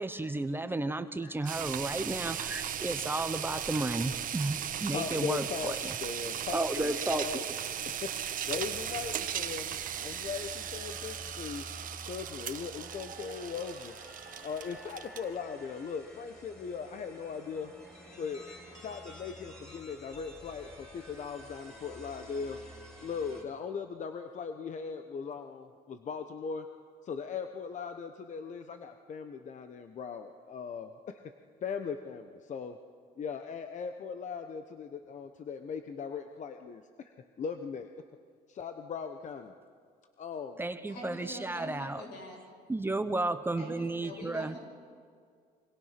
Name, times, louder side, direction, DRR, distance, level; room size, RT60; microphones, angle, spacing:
voice 1, 0.0-5.9 6.5-7.4 40.6-42.0 42.7-44.6, right 2 dB, 15° right, 10 dB, 1.0 m, -33 dB
sound 1, 1.5-15.4, right 9 dB, 55° right, 1.2 m, -37 dB
voice 2, 4.9-7.4 8.0-8.1 8.5-11.6 12.0-13.9 14.4-17.7 18.2-18.5 18.7-22.6 23.0-26.7 27.0-31.2 31.6-32.8 33.2-36.8 37.4-37.9 38.5-39.5 40.2-40.6, left 6 dB, 45° left, 7 dB, 1.1 m, -39 dB
sound 2, 8.6-23.4, left 1 dB, 5° left, 5.7 m, -51 dB
voice 3, 40.9-42.5 43.6-44.6, left 1 dB, 80° left, 1 dB, 7.6 m, -45 dB
27.0 x 25.0 x 6.0 m, 2.1 s
cardioid pair, 110°, 17 cm